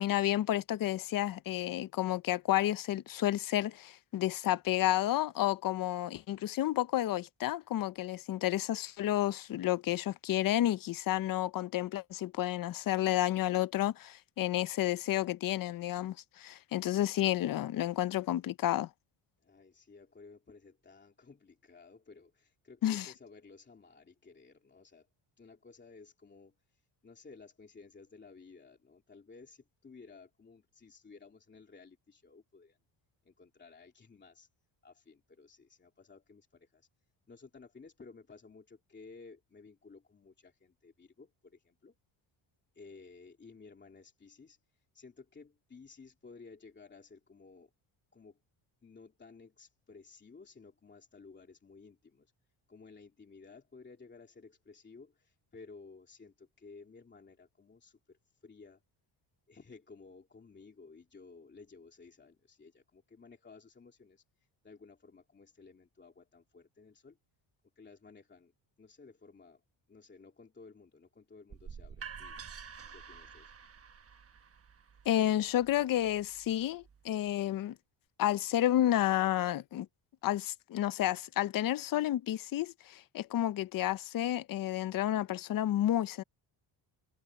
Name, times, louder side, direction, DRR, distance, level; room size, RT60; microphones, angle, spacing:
voice 1, 0.0-18.9 22.8-23.1 75.1-77.8 78.2-79.9 80.2-86.2, left 13 dB, 45° left, 0.5 m, -31 dB
voice 2, 19.4-25.1 25.4-32.8 33.2-34.5 34.8-36.9 37.3-41.9 42.7-47.7 48.1-48.4 48.8-52.3 52.7-58.8 59.5-67.2 67.8-68.5 68.8-69.6 69.9-72.4 72.9-73.5, left 4 dB, 20° left, 2.9 m, -55 dB
sound 1, 71.5-77.3, right 6 dB, 30° right, 1.0 m, -50 dB
cardioid pair, 165°, 49 cm